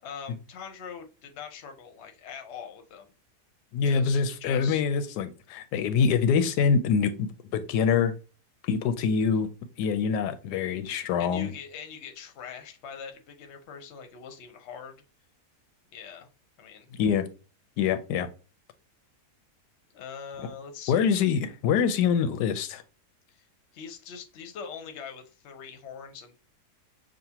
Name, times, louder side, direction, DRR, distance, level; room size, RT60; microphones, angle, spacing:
voice 1, 0.0-3.1 3.8-4.8 11.2-15.0 15.9-16.3 16.6-16.9 19.9-21.4 23.3-23.4 23.7-26.3, left 6 dB, 55° left, 0.9 m, -42 dB
voice 2, 3.7-8.1 8.6-9.5 9.8-11.5 16.9-17.3 17.8-18.3 20.9-22.8, left 6 dB, 85° left, 1.2 m, -25 dB
6.4 x 2.4 x 2.8 m
omnidirectional pair, 1.7 m